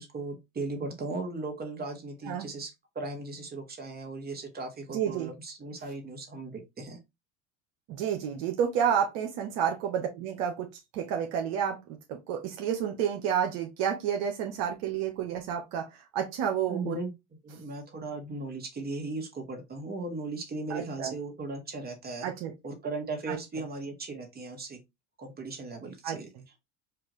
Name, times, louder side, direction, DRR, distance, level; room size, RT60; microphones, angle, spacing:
voice 1, 0.0-7.0 16.7-17.1 17.4-22.3 22.6-24.8 25.2-26.3, right 3 dB, 25° right, 1.5 m, -37 dB
voice 2, 4.9-5.3 7.9-10.7 10.9-11.8 12.1-15.9 16.1-17.0 20.7-21.1 22.2-22.5 23.3-23.4 26.0-26.2, right 8 dB, 65° right, 0.9 m, -30 dB
4.6 x 2.5 x 3.1 m
hypercardioid pair, 85°, 36 cm